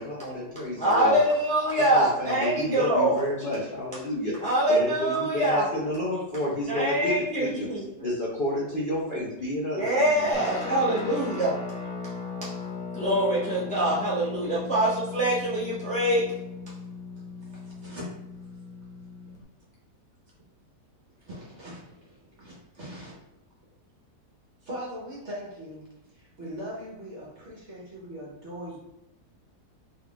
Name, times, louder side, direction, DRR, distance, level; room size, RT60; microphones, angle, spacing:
voice 1, 0.0-1.2 1.9-4.3 4.7-7.7 8.0-10.3, left 1 dB, 50° left, -5 dB, 0.6 m, -30 dB
voice 2, 0.8-3.3 4.4-5.7 6.7-7.8 9.7-11.6 12.4-12.5 12.9-16.3, right 1 dB, 5° left, -8 dB, 0.7 m, -24 dB
Guitar, 10.3-19.4, left 4 dB, 75° left, 1.5 m, -37 dB
voice 3, 21.3-21.8 22.4-23.1 24.7-25.8 26.4-28.8, equal, 50° right, -5 dB, 1.3 m, -39 dB
3.7 x 3.3 x 2.3 m, 0.89 s
omnidirectional pair, 1.7 m